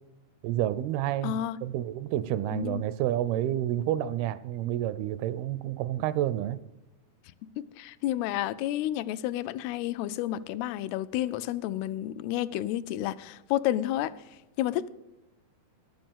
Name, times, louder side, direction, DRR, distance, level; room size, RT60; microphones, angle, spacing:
voice 1, 0.4-6.6, right 12 dB, 85° right, 15 dB, 2.4 m, -29 dB
voice 2, 1.2-1.6 2.5-2.8 7.8-14.9, left 13 dB, 85° left, 13 dB, 2.5 m, -31 dB
11.0 x 7.7 x 7.2 m, 0.94 s
omnidirectional pair, 4.5 m